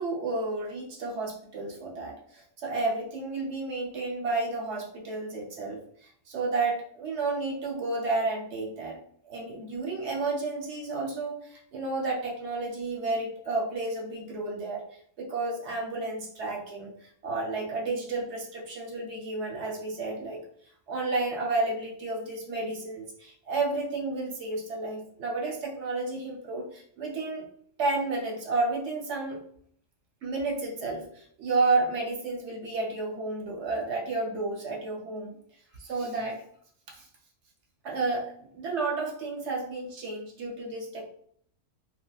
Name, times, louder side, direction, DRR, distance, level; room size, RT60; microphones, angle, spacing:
voice 1, 0.0-9.0 9.2-14.8 15.2-20.4 20.9-27.5 27.8-29.4 30.2-35.4 35.8-36.4 36.9-37.1 37.8-41.1, right 3 dB, 55° right, -1 dB, 0.9 m, -31 dB
3.4 x 2.1 x 2.3 m, 0.62 s
omnidirectional pair, 1.6 m